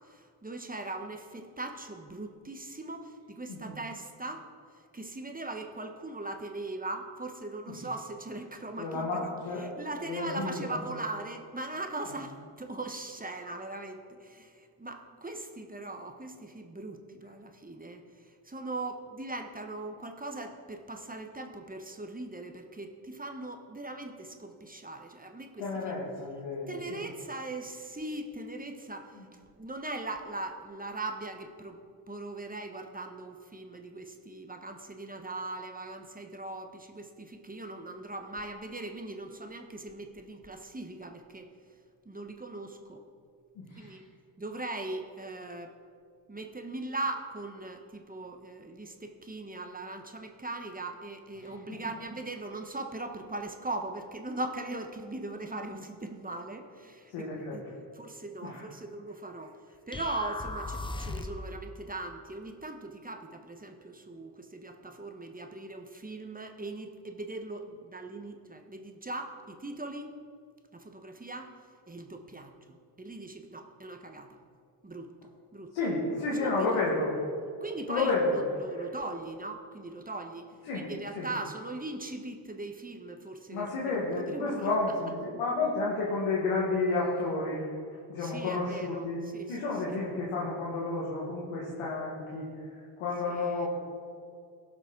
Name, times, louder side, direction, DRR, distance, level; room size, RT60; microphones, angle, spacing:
voice 1, 0.0-4.4 4.9-9.3 9.6-26.0 26.7-31.8 32.1-41.5 42.0-43.0 43.8-44.0 44.4-45.7 46.3-57.6 57.9-59.6 59.9-70.1 70.7-71.5 71.9-74.4 74.8-75.1 75.5-75.7 76.4-76.7 77.6-80.5 80.7-83.7 84.0-84.7 88.2-89.6 89.9-90.0 93.3-93.7, right 2 dB, 15° right, 4 dB, 1.1 m, -40 dB
voice 2, 8.8-9.7 10.1-10.8 25.6-27.0 29.1-29.3 43.5-44.0 51.4-51.8 57.1-57.7 58.4-58.6 75.7-77.1 77.9-78.4 80.7-81.3 83.5-87.6 88.1-92.5 93.0-93.7, left 3 dB, 90° left, -5 dB, 1.7 m, -31 dB
sound 1, 59.9-61.5, left 2 dB, 10° left, 0.7 m, -37 dB
16.5 x 6.0 x 3.9 m, 2.3 s
supercardioid pair, 55°, 50 cm